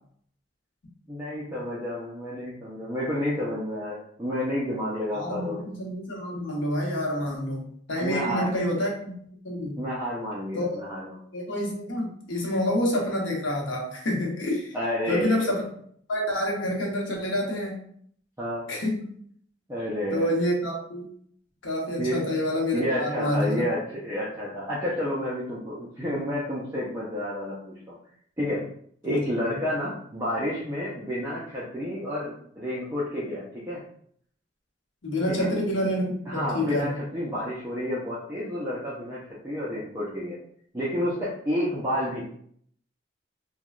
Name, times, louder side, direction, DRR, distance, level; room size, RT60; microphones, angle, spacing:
voice 1, 1.1-5.6 8.0-8.5 9.8-11.2 14.7-15.5 18.4-18.6 19.7-20.3 22.0-22.3 22.7-28.0 28.4-28.7 29.0-33.8 35.3-35.5 36.3-40.4 40.7-42.2, left 1 dB, 15° right, -8 dB, 0.5 m, -30 dB
voice 2, 5.1-9.1 9.4-9.8 10.5-10.7 11.3-14.7 15.1-15.6 16.1-17.7 18.7-19.1 20.1-21.1 21.6-23.6 29.0-29.6 35.0-36.9, left 1 dB, 80° left, -1 dB, 0.9 m, -28 dB
3.2 x 2.2 x 2.4 m, 0.63 s
head